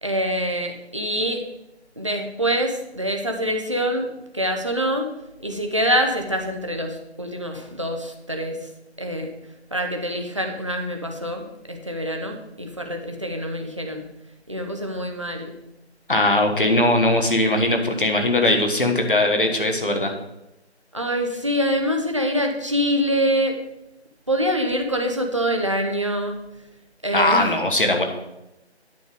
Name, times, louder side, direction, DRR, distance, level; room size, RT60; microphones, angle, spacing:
voice 1, 0.0-1.4 2.0-5.1 5.4-8.6 9.0-9.3 9.7-14.0 14.5-15.5 20.9-23.6 24.3-26.4 27.0-27.6, equal, 30° right, 3 dB, 0.7 m, -25 dB
voice 2, 16.1-20.1 27.1-28.0, left 1 dB, 50° left, 4 dB, 1.4 m, -20 dB
9.3 x 6.6 x 4.8 m, 0.90 s
figure-of-eight pair, 165°, 34 cm